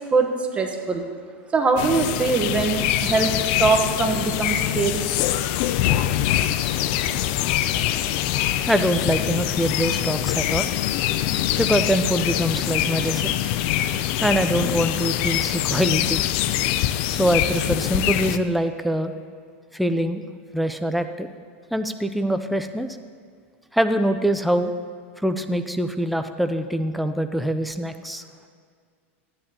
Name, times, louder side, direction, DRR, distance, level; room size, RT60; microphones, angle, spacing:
voice 1, 0.1-1.0 1.5-3.3 3.6-5.1, right 4 dB, 20° right, 4 dB, 1.1 m, -22 dB
sound 1, 1.8-18.4, left 12 dB, 55° left, 0.5 m, -24 dB
voice 2, 8.7-10.7 11.6-13.3 14.2-16.2 17.1-19.1 19.7-20.2 20.5-21.3 21.7-22.9 23.7-24.7 25.2-28.2, equal, ahead, 8 dB, 0.5 m, -24 dB
13.5 x 9.9 x 2.9 m, 2.1 s
supercardioid pair, 125°, 7 cm